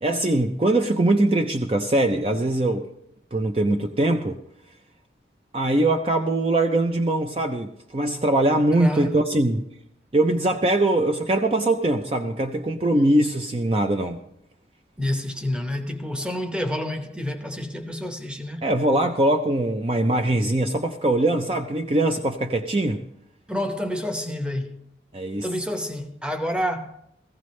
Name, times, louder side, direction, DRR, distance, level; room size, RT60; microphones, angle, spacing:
voice 1, 0.0-2.9 3.3-4.4 5.5-9.6 10.1-14.2 18.6-23.0 25.1-25.5, right 1 dB, 30° right, 0.5 m, -22 dB
voice 2, 8.8-9.2 15.0-18.7 23.5-24.8 25.4-27.0, left 1 dB, 5° right, 0.8 m, -28 dB
16.5 x 15.0 x 3.2 m
head